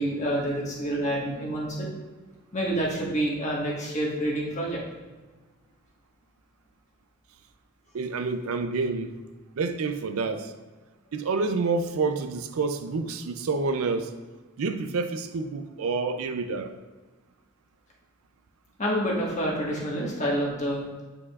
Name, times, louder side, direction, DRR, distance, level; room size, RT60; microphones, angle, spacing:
voice 1, 0.0-1.9 2.5-4.8 18.8-20.8, right 1 dB, 35° left, -3 dB, 1.3 m, -28 dB
voice 2, 7.9-9.1 9.6-10.5 11.1-14.2 14.6-16.7, right 4 dB, 80° right, 8 dB, 0.5 m, -28 dB
8.5 x 4.8 x 2.4 m, 1.3 s
head